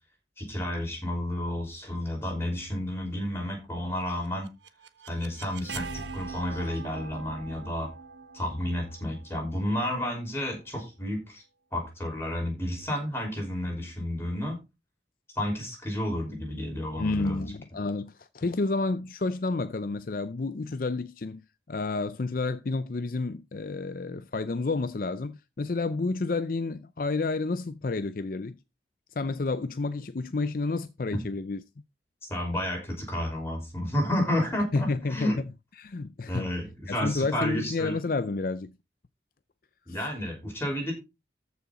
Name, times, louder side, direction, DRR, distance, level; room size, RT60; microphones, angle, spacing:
voice 1, 0.4-4.5 5.1-7.9 8.3-11.4 11.7-14.6 15.4-17.5 32.3-35.4 36.3-38.0 39.9-40.9, left 1 dB, 15° left, 5.5 m, -31 dB
sound 1, 4.2-10.1, right 4 dB, 85° right, 1.3 m, -42 dB
voice 2, 17.0-21.4 21.7-28.6 29.2-31.6 34.7-35.3 35.8-36.5 36.9-38.7, left 3 dB, 50° left, 0.5 m, -30 dB
14.0 x 6.4 x 4.2 m
head